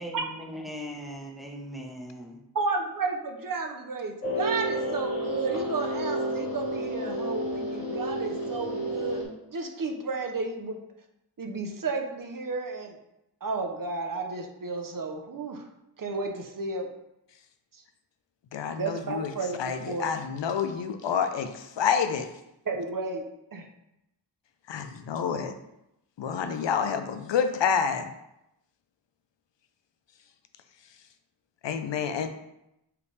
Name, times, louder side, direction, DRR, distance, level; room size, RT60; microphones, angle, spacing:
voice 1, 0.0-2.4, equal, ahead, -1 dB, 0.8 m, -39 dB
voice 2, 2.5-9.2 9.5-10.8 11.4-12.9 13.4-15.6 16.0-16.9 18.8-20.1 22.7-23.2 23.5-23.6, right 3 dB, 50° right, 3 dB, 0.7 m, -32 dB
sound 1, 4.2-9.2, right 1 dB, 50° left, 1.6 m, -31 dB
voice 3, 18.5-19.3 19.6-22.3 24.7-25.5 26.2-28.1 31.6-32.3, left 7 dB, 80° left, 8 dB, 0.5 m, -28 dB
4.8 x 3.3 x 3.2 m, 0.86 s
wide cardioid pair, 90°, 43 cm